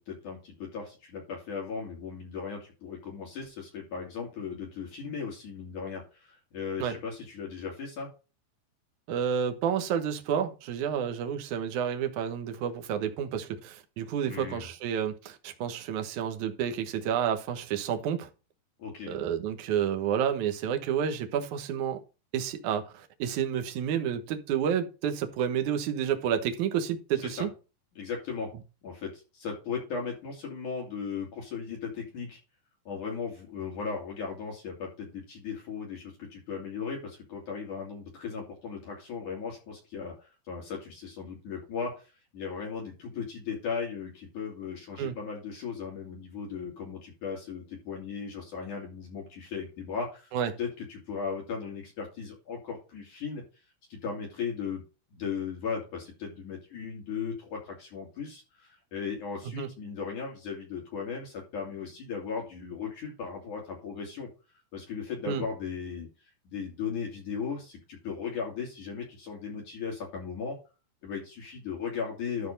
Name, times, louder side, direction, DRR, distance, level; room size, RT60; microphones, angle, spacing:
voice 1, 0.0-8.1 14.3-14.7 18.8-19.2 27.2-27.5 28.0-28.5 28.8-32.4 32.9-50.3 50.6-53.4 53.9-54.8 55.1-64.3 64.7-66.1 66.5-70.6 71.0-72.5, left 6 dB, 50° left, 3.6 m, -37 dB
voice 2, 9.1-18.3 19.1-22.0 22.3-27.5 45.0-45.2 50.3-50.5 59.5-59.7 65.3-65.4, right 8 dB, 65° right, 2.0 m, -30 dB
12.0 x 4.2 x 5.3 m
omnidirectional pair, 4.8 m